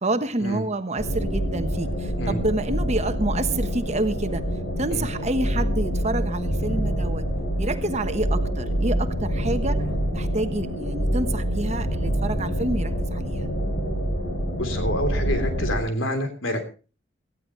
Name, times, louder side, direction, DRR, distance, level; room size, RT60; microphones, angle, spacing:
voice 1, 0.0-4.4 4.8-7.3 7.6-9.8 10.1-13.5, right 2 dB, 35° right, 9 dB, 1.2 m, -28 dB
sound 1, 1.0-15.8, equal, 65° left, 7.1 m, -26 dB
voice 2, 14.6-16.6, left 1 dB, 80° left, 7 dB, 3.5 m, -27 dB
18.0 x 15.0 x 3.2 m, 0.34 s
head